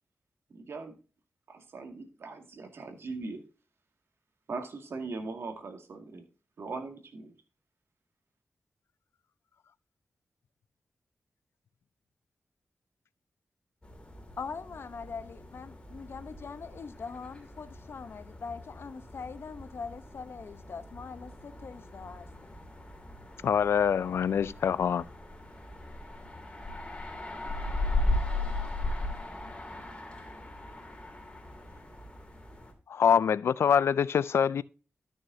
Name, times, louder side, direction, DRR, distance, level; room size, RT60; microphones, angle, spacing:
voice 1, 0.5-1.0 1.5-3.4 4.5-6.2 6.6-7.3, right 3 dB, 75° right, 2.0 m, -40 dB
sound 1, 13.8-32.7, left 2 dB, 25° left, 2.7 m, -38 dB
voice 2, 14.4-22.6, left 5 dB, 65° left, 0.8 m, -42 dB
voice 3, 23.4-25.0 32.9-34.6, left 7 dB, 90° left, 0.4 m, -25 dB
13.0 x 6.3 x 2.7 m
cardioid pair, 70°, 4 cm